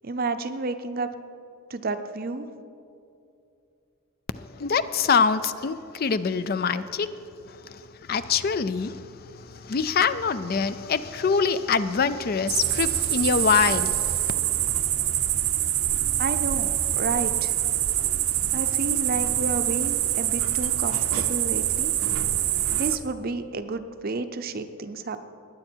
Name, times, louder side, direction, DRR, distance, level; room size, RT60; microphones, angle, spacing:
voice 1, 0.0-1.1 1.7-2.5 16.2-17.5 18.5-21.9 22.7-25.2, right 3 dB, 45° right, 0.6 m, -31 dB
voice 2, 4.3-7.1 7.5-14.3, left 5 dB, 45° left, 0.4 m, -25 dB
sound 1, 12.5-23.0, right 12 dB, 80° right, 0.7 m, -25 dB
19.5 x 9.6 x 4.5 m
head